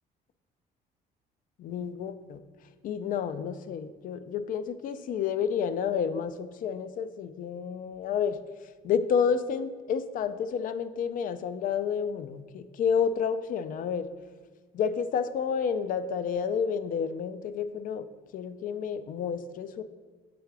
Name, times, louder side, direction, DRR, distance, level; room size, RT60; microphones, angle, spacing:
voice 1, 1.6-2.4 2.8-8.4 8.8-14.1 14.7-18.1 18.3-19.8, left 7 dB, 55° left, 13 dB, 0.4 m, -30 dB
6.8 x 3.8 x 4.6 m, 1.4 s
cardioid pair, 110°, 17 cm